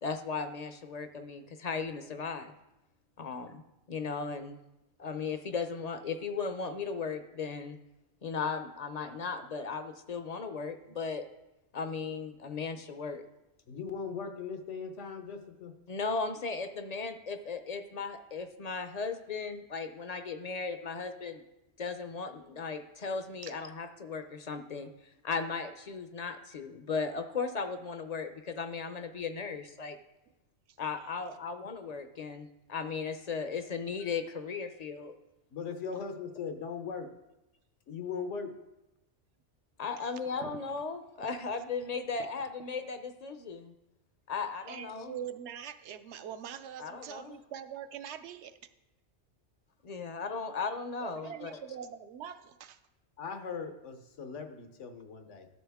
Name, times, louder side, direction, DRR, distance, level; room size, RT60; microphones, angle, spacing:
voice 1, 0.0-2.5 3.2-3.6 3.9-4.6 5.0-7.8 8.2-11.2 11.7-13.2 15.9-21.4 21.8-24.9 25.2-30.0 30.8-35.2 39.8-43.7 44.3-45.1 46.8-47.4 49.8-51.5, left 5 dB, 50° left, 9 dB, 0.5 m, -36 dB
voice 2, 13.7-15.8 35.5-37.1 37.9-38.5 53.2-55.5, left 5 dB, 90° left, 7 dB, 1.2 m, -39 dB
voice 3, 40.0-40.6 44.7-48.7 51.0-52.8, right 8 dB, 75° right, 10 dB, 0.8 m, -43 dB
12.5 x 6.3 x 3.5 m, 0.94 s
omnidirectional pair, 1.2 m